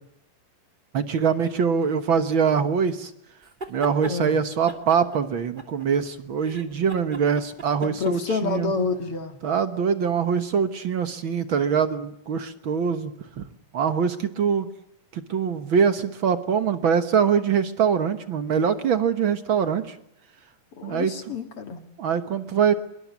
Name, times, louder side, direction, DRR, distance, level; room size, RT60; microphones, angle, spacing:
voice 1, 0.9-3.1 3.7-8.7 9.4-13.4 13.7-14.7 15.1-19.9 20.8-21.1 22.0-22.7, right 7 dB, 60° right, 11 dB, 1.3 m, -23 dB
sound 1, 3.4-4.2 4.7-6.1 6.4-8.6, right 1 dB, 15° right, 2.4 m, -39 dB
voice 2, 7.8-9.4 20.8-21.8, left 4 dB, 45° left, 8 dB, 2.6 m, -28 dB
26.0 x 23.0 x 8.3 m, 0.76 s
omnidirectional pair, 4.1 m